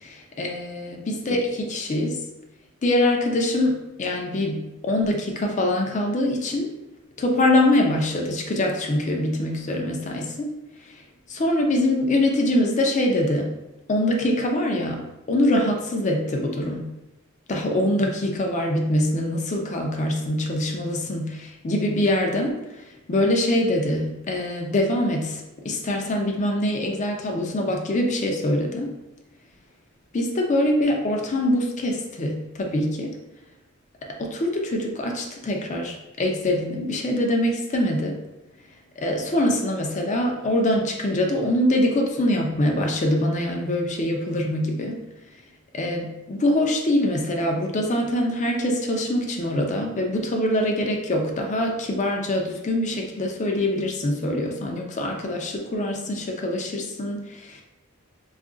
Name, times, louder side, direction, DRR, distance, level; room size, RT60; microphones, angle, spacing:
voice 1, 0.0-2.2 2.8-6.7 7.2-10.5 11.3-13.5 13.9-15.0 15.3-16.9 17.5-22.6 23.1-28.9 30.1-33.1 34.2-38.2 39.0-45.0 45.7-57.6, left 1 dB, 35° left, 2 dB, 0.5 m, -24 dB
2.4 x 2.3 x 3.7 m, 0.98 s
head